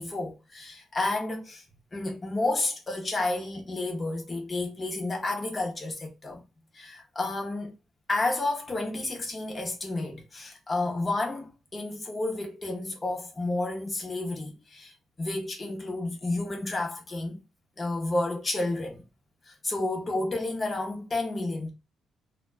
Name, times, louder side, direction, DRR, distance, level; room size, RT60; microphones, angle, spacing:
voice 1, 0.0-1.6 1.9-6.4 6.7-7.7 8.1-17.4 17.8-19.0 19.5-21.7, left 2 dB, 25° left, 0.8 m, -31 dB
2.2 x 2.1 x 3.3 m
cardioid pair, 90°, 0 cm